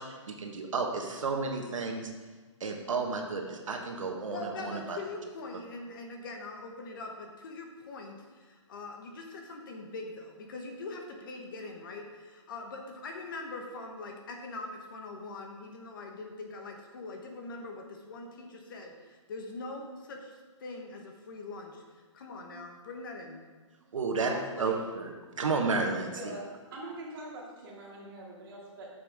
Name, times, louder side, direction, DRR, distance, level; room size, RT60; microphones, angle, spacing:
voice 1, 0.0-2.1 2.6-5.0 23.9-26.3, right 4 dB, 85° right, 3 dB, 1.3 m, -32 dB
voice 2, 4.3-20.3 20.6-21.8 22.1-23.4, left 3 dB, 40° left, 3 dB, 1.1 m, -42 dB
voice 3, 24.2-24.8 26.1-26.4 26.7-28.9, right 2 dB, 45° right, -4 dB, 2.5 m, -43 dB
9.2 x 6.9 x 3.5 m, 1.4 s
hypercardioid pair, 170°, 16 cm